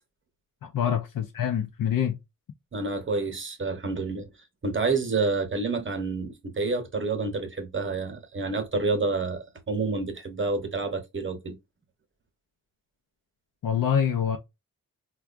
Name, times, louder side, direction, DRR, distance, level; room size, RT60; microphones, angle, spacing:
voice 1, 0.6-2.2 13.6-14.4, left 8 dB, 70° left, 0.6 m, -25 dB
voice 2, 2.7-4.3 4.6-11.6, right 3 dB, 35° right, 0.9 m, -28 dB
4.5 x 2.3 x 2.4 m
wide cardioid pair, 120°, 34 cm